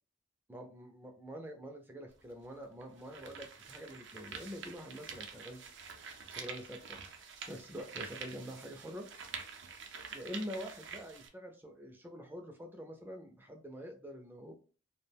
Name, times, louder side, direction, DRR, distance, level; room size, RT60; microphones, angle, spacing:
voice 1, 0.5-5.6 6.3-9.1 10.1-14.5, equal, 10° right, 3 dB, 0.4 m, -46 dB
sound 1, 2.1-2.2 2.8-11.3, right 5 dB, 70° right, 0.5 m, -47 dB
2.3 x 2.1 x 3.3 m, 0.38 s
head